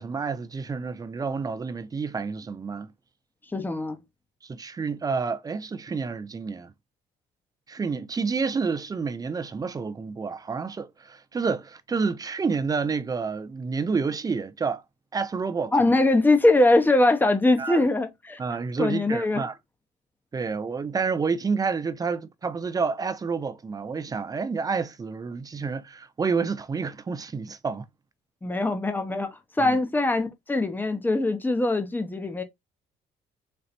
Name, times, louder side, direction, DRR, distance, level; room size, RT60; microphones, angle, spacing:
voice 1, 0.0-2.9 4.4-6.7 7.7-14.8 15.1-15.7 17.6-17.8 18.4-19.5 20.3-27.9 29.6-29.8, right 5 dB, 20° right, 0.5 m, -29 dB
voice 2, 3.5-4.0 15.7-18.4 18.8-19.5 28.4-32.4, left 2 dB, 10° left, 0.9 m, -22 dB
4.2 x 3.1 x 2.6 m
cardioid pair, 110°, 17 cm